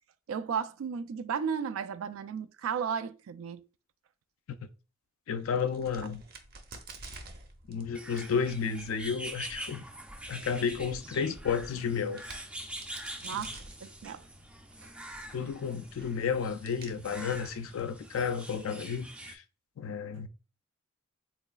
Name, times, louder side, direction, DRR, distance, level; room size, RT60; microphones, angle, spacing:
voice 1, 0.3-3.7 13.2-14.2, right 7 dB, 85° right, 0.3 m, -34 dB
voice 2, 5.3-6.2 7.7-9.8 10.3-12.2 13.3-13.5 15.3-19.4 19.8-20.3, left 6 dB, 75° left, 0.4 m, -32 dB
Crack, 5.3-18.6, right 2 dB, 50° right, 0.7 m, -52 dB
sound 1, 7.9-19.4, right 1 dB, 5° right, 0.3 m, -44 dB
3.8 x 3.0 x 2.3 m
head